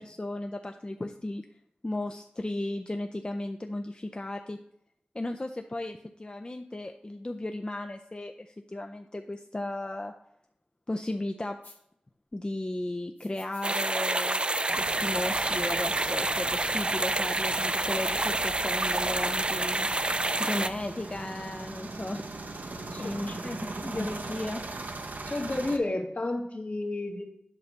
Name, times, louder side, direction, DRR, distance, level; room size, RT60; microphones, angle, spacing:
voice 1, 0.0-1.4 1.8-4.6 5.1-10.1 10.9-11.6 12.3-14.4 14.8-22.2 22.5-22.7 23.0-24.8, left 1 dB, 30° left, 4 dB, 0.5 m, -35 dB
sound 1, 11.6-11.8 13.2-13.9 15.4-15.5 16.0-16.1 16.3-16.4 17.8-18.4, left 2 dB, 85° left, 1.4 m, -51 dB
sound 2, 13.6-20.7, right 2 dB, 35° right, 0.4 m, -28 dB
sound 3, 14.7-25.8, right 2 dB, 75° right, 0.8 m, -40 dB
voice 2, 22.9-23.4 25.3-27.2, left 2 dB, 60° left, 1 dB, 1.6 m, -31 dB
8.3 x 3.3 x 6.5 m, 0.76 s
cardioid pair, 40°, 3 cm